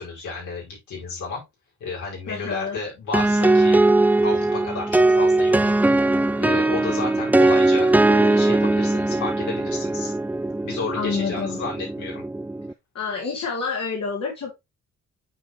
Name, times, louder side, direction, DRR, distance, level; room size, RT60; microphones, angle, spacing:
voice 1, 0.0-1.4 1.8-3.8 4.2-5.7 6.4-10.1 10.6-12.2, left 4 dB, 75° left, -4 dB, 5.2 m, -32 dB
voice 2, 2.3-2.8 10.9-11.6 12.9-14.5, left 5 dB, 55° left, -1 dB, 2.6 m, -28 dB
sound 1, 3.1-12.7, right 2 dB, 5° right, 0.3 m, -20 dB
8.6 x 4.8 x 3.0 m, 0.21 s
cardioid pair, 90°, 30 cm